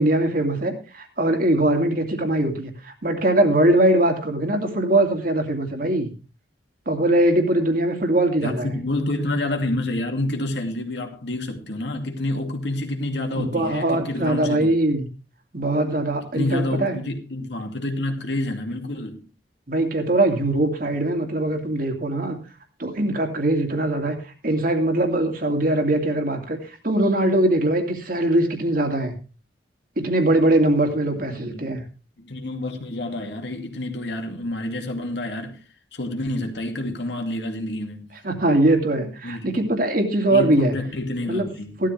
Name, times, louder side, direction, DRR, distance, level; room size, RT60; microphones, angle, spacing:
voice 1, 0.0-6.1 6.9-8.7 13.3-15.1 15.5-17.0 19.7-22.4 22.8-29.1 30.0-31.8 38.2-40.7 41.3-41.5 41.8-41.9, right 1 dB, 55° right, 2.5 m, -21 dB
voice 2, 8.4-14.7 16.3-19.2 31.3-31.6 32.2-35.6 35.9-38.1 39.2-39.8 40.3-41.8, left 1 dB, 80° left, 2.3 m, -28 dB
14.5 x 12.5 x 3.4 m
head